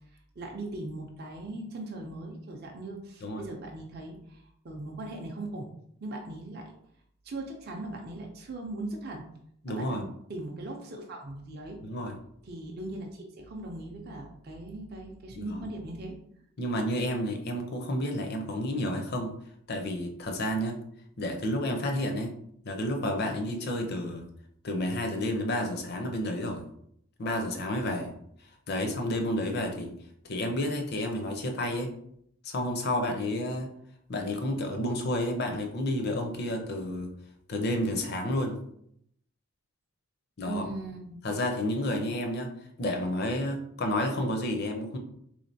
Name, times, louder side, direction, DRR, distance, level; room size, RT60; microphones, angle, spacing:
voice 1, 0.4-5.7 6.0-6.7 7.2-9.2 9.7-10.0 10.3-11.8 12.4-16.2 40.4-41.2, right 2 dB, 45° right, 0 dB, 0.5 m, -39 dB
voice 2, 9.6-10.0 11.8-12.1 15.3-15.7 16.6-19.3 19.7-20.8 21.2-22.3 22.6-24.2 24.6-26.6 27.2-28.1 28.7-29.9 30.2-31.9 32.4-33.7 34.1-37.1 37.5-38.6 40.4-40.6 41.2-42.5 42.8-45.0, left 1 dB, 45° left, 4 dB, 0.5 m, -30 dB
3.6 x 3.2 x 2.7 m, 0.71 s
head